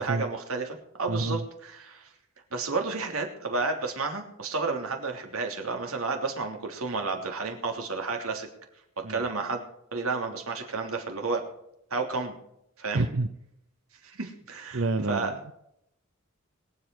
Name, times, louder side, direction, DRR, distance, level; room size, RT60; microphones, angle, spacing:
voice 1, 0.0-2.1 2.5-8.5 9.0-9.6 9.9-11.4 11.9-12.3 12.8-13.1 14.0-15.3, right 4 dB, 85° right, 3 dB, 3.1 m, -31 dB
voice 2, 1.1-1.4 9.0-9.2 12.9-13.3 14.7-15.5, right 2 dB, 65° right, 9 dB, 0.7 m, -28 dB
22.5 x 8.0 x 4.7 m, 0.79 s
head